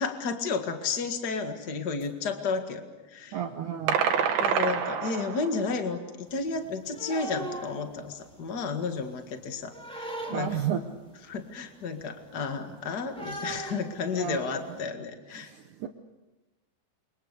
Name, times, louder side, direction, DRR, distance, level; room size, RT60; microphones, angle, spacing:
voice 1, 0.0-2.8 3.1-3.4 4.4-10.5 11.3-15.5, left 4 dB, 60° left, 6 dB, 1.0 m, -32 dB
voice 2, 3.3-4.0 10.3-10.8 14.2-14.8 15.3-15.6 15.8-15.9, right 9 dB, 85° right, 6 dB, 1.7 m, -32 dB
sound 1, 3.9-5.6, right 7 dB, 65° right, 3.1 m, -26 dB
sound 2, 6.3-8.6 8.9-10.9 11.3-11.4 11.7-14.8, right 2 dB, ahead, 3.2 m, -39 dB
29.5 x 24.0 x 6.7 m, 1.1 s
omnidirectional pair, 5.2 m